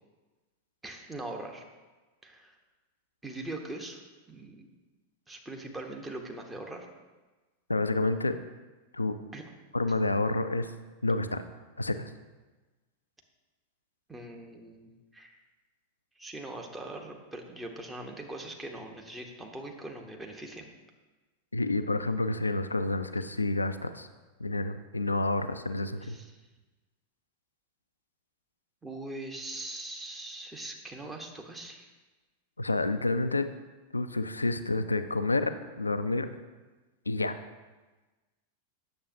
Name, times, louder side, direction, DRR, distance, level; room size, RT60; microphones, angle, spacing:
voice 1, 0.8-1.6 2.2-2.6 3.2-4.0 4.3-4.7 5.3-6.9 9.3-9.4 14.1-15.4 16.2-20.7 26.0-26.4 28.8-31.9, right 2 dB, 10° right, 2 dB, 0.9 m, -41 dB
voice 2, 7.7-8.4 8.9-9.2 9.7-10.7 11.0-11.4 11.8-12.1 21.5-24.1 24.4-26.2 32.6-33.5 33.9-36.3 37.1-37.4, left 2 dB, 80° left, 10 dB, 0.4 m, -29 dB
8.8 x 6.9 x 2.7 m, 1.2 s
figure-of-eight pair, 90°, 0 cm